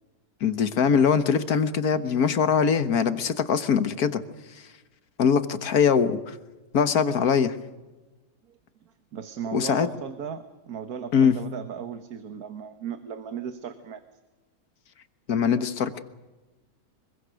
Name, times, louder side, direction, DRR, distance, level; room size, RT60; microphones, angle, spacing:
voice 1, 0.4-4.2 5.2-6.3 6.7-7.6 9.5-9.9 11.1-11.3 15.3-16.0, left 6 dB, 85° left, 11 dB, 1.8 m, -22 dB
voice 2, 8.9-14.0, right 7 dB, 85° right, 9 dB, 1.7 m, -36 dB
25.0 x 23.0 x 6.4 m, 1.1 s
omnidirectional pair, 1.5 m